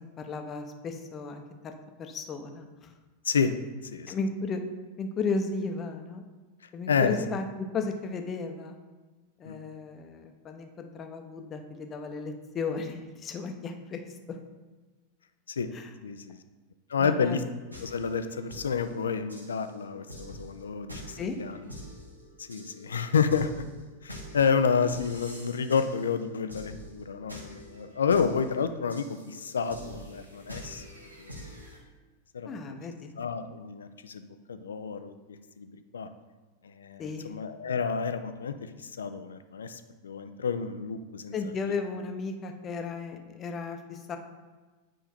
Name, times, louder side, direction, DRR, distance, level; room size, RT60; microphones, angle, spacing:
voice 1, 0.2-1.7 2.0-2.9 4.1-4.6 5.0-6.2 6.7-7.5 7.7-8.8 9.4-14.0 14.3-14.4 15.7-15.9 17.0-17.4 21.2-21.4 32.4-33.2 37.0-37.4 41.3-44.2, left 4 dB, 25° left, 5 dB, 0.9 m, -34 dB
voice 2, 3.2-3.5 3.9-4.1 6.9-7.2 9.4-9.6 15.5-15.7 16.0-16.4 16.9-17.4 17.8-21.7 22.4-23.6 24.0-30.8 31.2-31.4 32.3-32.8 33.2-35.1 35.6-35.7 35.9-36.1 36.6-41.3, left 6 dB, 70° left, 9 dB, 0.6 m, -29 dB
sound 1, 17.7-31.8, equal, 85° right, 1.4 m, -46 dB
9.1 x 5.0 x 4.4 m, 1.3 s
figure-of-eight pair, 90°, 0 cm